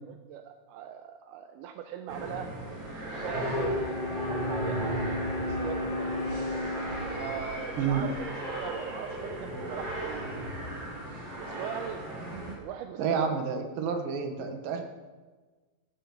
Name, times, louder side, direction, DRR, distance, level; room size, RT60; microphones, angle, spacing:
voice 1, 0.1-2.5 3.2-6.2 7.1-8.3 8.6-10.5 11.4-12.0 12.6-13.3, right 9 dB, 80° right, 5 dB, 2.6 m, -40 dB
sound 1, 2.1-12.5, equal, 45° right, 5.3 m, -35 dB
Bowed string instrument, 3.0-8.4, left 2 dB, 80° left, 0.9 m, -36 dB
voice 2, 13.0-14.8, right 6 dB, 65° right, 4 dB, 3.1 m, -29 dB
17.0 x 12.5 x 5.6 m, 1.3 s
omnidirectional pair, 4.6 m